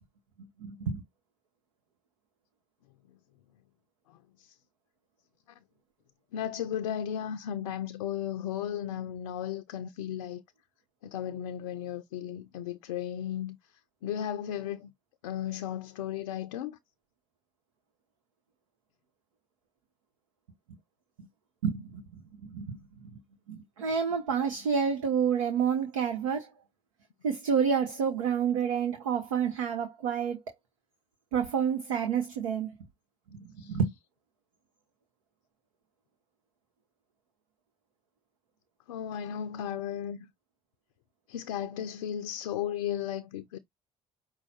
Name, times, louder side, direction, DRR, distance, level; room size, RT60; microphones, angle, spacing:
voice 1, 0.4-1.0 21.2-21.3 21.6-22.0 22.4-23.2 23.5-26.5 27.2-30.4 31.3-32.7 33.3-33.9, right 7 dB, 80° right, 0.9 m, -29 dB
voice 2, 4.1-4.6 6.3-10.4 11.0-14.9 15.2-16.8 33.6-33.8 38.9-40.3 41.3-43.6, left 10 dB, 80° left, 0.4 m, -35 dB
5.5 x 2.1 x 4.2 m
hypercardioid pair, 55°, 17 cm